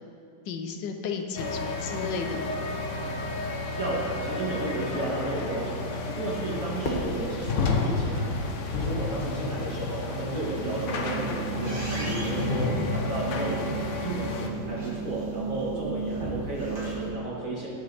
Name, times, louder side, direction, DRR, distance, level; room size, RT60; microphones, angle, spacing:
voice 1, 0.5-2.6 12.0-12.5, left 5 dB, 75° left, 5 dB, 1.5 m, -34 dB
sound 1, 1.4-14.5, left 3 dB, 50° left, 1.0 m, -31 dB
voice 2, 3.8-8.3 8.7-13.7 14.0-17.7, right 2 dB, 45° right, -6 dB, 2.1 m, -33 dB
Fireworks, 6.8-9.1, equal, 30° left, 1.4 m, -36 dB
sound 2, 10.6-17.1, right 4 dB, 65° right, 2.9 m, -34 dB
18.0 x 6.3 x 4.3 m, 2.6 s
omnidirectional pair, 2.0 m